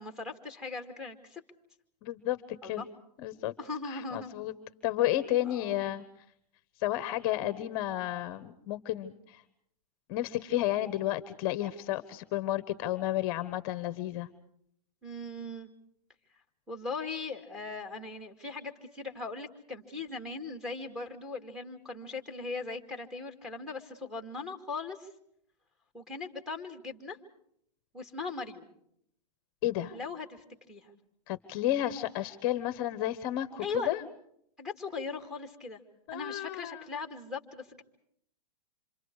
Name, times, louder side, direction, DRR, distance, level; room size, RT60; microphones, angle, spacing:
voice 1, 0.0-1.4 2.6-2.9 3.6-4.3 5.4-5.8 15.0-15.7 16.7-25.1 25.9-27.2 27.9-28.6 29.9-30.9 33.6-33.9 34.6-35.8 36.1-37.8, left 3 dB, 5° right, 5 dB, 2.4 m, -39 dB
voice 2, 2.0-2.8 3.2-3.5 3.9-4.5 4.8-6.0 6.8-9.4 10.1-14.3 29.6-30.0 31.3-34.0 36.1-36.9, left 14 dB, 35° left, 13 dB, 1.1 m, -32 dB
27.5 x 26.0 x 4.8 m, 0.70 s
hypercardioid pair, 155°, 20 cm